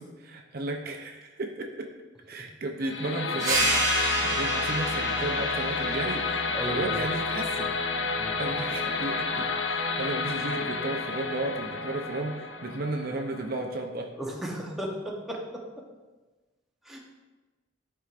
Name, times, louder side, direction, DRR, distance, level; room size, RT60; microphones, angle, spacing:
voice 1, 0.0-1.9 2.3-7.7 8.4-14.1, right 2 dB, 50° right, 3 dB, 0.6 m, -34 dB
sound 1, 2.8-13.8, left 4 dB, 65° left, 0.6 m, -30 dB
sound 2, 3.4-8.6, right 2 dB, 20° right, 1.6 m, -31 dB
voice 2, 6.5-7.0 8.1-8.4 14.1-15.4 16.9-17.0, right 1 dB, ahead, -2 dB, 0.9 m, -34 dB
11.5 x 4.6 x 2.5 m, 1.2 s
head